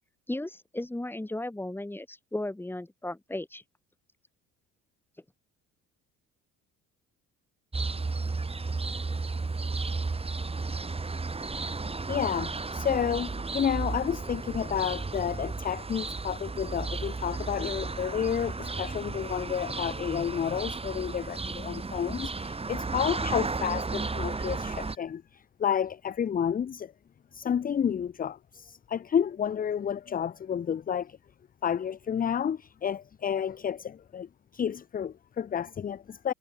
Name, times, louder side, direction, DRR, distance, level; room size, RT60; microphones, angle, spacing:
voice 1, 0.3-3.6, left 1 dB, 5° left, 1.8 m, -35 dB
sound 1, 7.7-24.9, right 3 dB, 20° right, 2.3 m, -33 dB
voice 2, 12.1-26.9 27.3-31.2 31.6-36.3, left 8 dB, 25° left, 0.6 m, -30 dB
cardioid pair, 90°, 31 cm